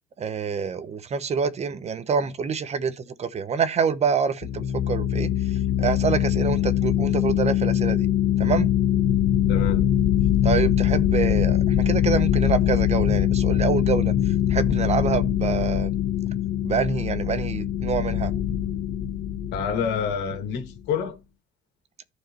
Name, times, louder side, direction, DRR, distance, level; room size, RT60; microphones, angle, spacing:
voice 1, 0.2-8.1 8.4-8.7 10.4-15.9 16.6-18.3, right 6 dB, 40° right, 0.9 m, -26 dB
sound 1, 4.4-20.7, left 11 dB, 65° left, 0.9 m, -23 dB
voice 2, 9.5-9.9 19.5-21.2, left 7 dB, 90° left, 2.0 m, -27 dB
14.0 x 4.7 x 3.0 m
cardioid pair, 110°, 17 cm